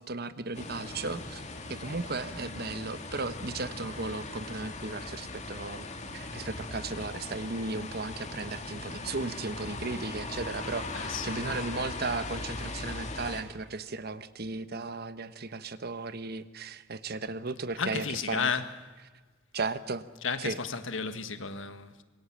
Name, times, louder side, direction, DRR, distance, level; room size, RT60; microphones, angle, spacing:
voice 1, 0.0-1.4 1.7-5.9 6.1-18.5 19.5-20.0 20.4-20.6, right 3 dB, 50° right, 1.1 m, -35 dB
sound 1, 0.5-13.4, left 2 dB, 35° left, 2.6 m, -39 dB
voice 2, 10.9-11.4 17.8-18.7 20.2-22.0, left 5 dB, 75° left, 1.6 m, -33 dB
26.0 x 23.0 x 7.5 m
head